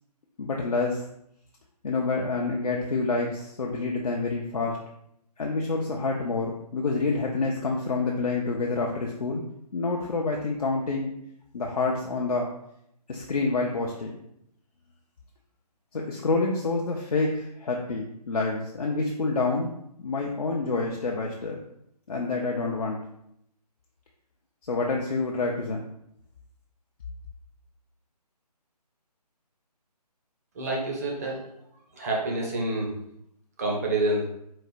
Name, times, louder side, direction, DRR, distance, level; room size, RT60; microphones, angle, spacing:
voice 1, 0.4-1.0 1.8-4.8 5.4-9.4 9.7-11.1 11.5-12.5 13.1-14.2 15.9-19.7 20.0-21.6 22.1-23.0 24.6-25.8, left 3 dB, 60° left, -1 dB, 0.7 m, -27 dB
voice 2, 30.5-31.5 31.9-32.9 33.6-34.2, right 2 dB, 25° right, -2 dB, 0.7 m, -27 dB
4.2 x 2.2 x 4.0 m, 0.75 s
figure-of-eight pair, 155°, 21 cm